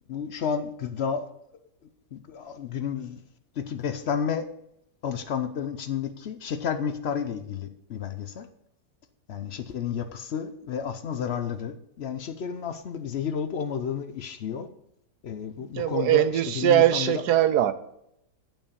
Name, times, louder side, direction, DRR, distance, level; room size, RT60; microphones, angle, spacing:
voice 1, 0.1-1.3 1.8-3.2 3.6-4.5 5.0-8.5 9.3-14.7 15.2-16.3 16.6-17.2, left 7 dB, 70° left, 0.6 m, -31 dB
voice 2, 15.6-17.7, right 12 dB, 75° right, 1.1 m, -21 dB
9.0 x 5.5 x 7.0 m
omnidirectional pair, 1.8 m